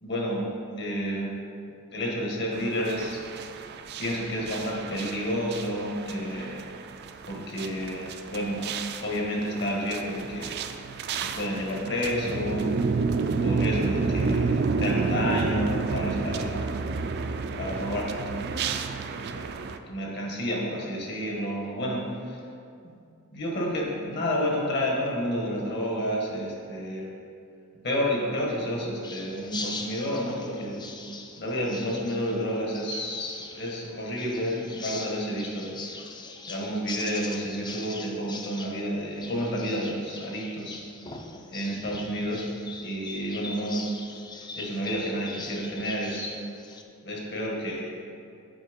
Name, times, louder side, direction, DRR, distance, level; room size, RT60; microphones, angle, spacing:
voice 1, 0.0-0.5 0.8-1.3 1.9-3.3 4.0-6.6 7.3-8.7 9.0-10.6 11.2-12.7 13.4-16.7 17.6-18.8 19.1-22.4 22.8-23.0 23.3-27.1 27.8-30.8 31.4-35.7 36.4-40.8 41.5-42.5 42.8-43.8 44.5-46.3 47.0-47.9, equal, 55° left, -2 dB, 1.5 m, -30 dB
sound 1, 2.5-19.8, right 4 dB, 50° right, 0.4 m, -30 dB
sound 2, 29.0-46.8, left 3 dB, 20° left, 0.4 m, -41 dB
7.9 x 4.4 x 5.1 m, 2.5 s
head